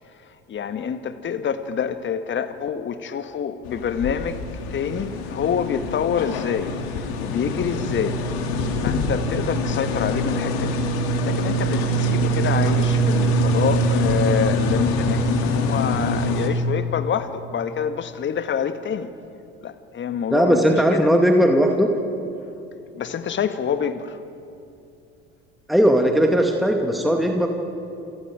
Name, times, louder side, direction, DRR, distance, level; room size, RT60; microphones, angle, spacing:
voice 1, 0.5-4.4 4.7-8.2 8.8-10.8 11.2-19.1 19.6-21.1 22.9-24.2, left 7 dB, 35° left, 10 dB, 1.6 m, -27 dB
sound 1, 3.7-16.5, equal, 60° left, 2.7 m, -23 dB
voice 2, 20.3-21.9 25.7-27.5, equal, ahead, 2 dB, 2.2 m, -18 dB
28.5 x 25.5 x 4.9 m, 2.6 s
figure-of-eight pair, 65°, 33 cm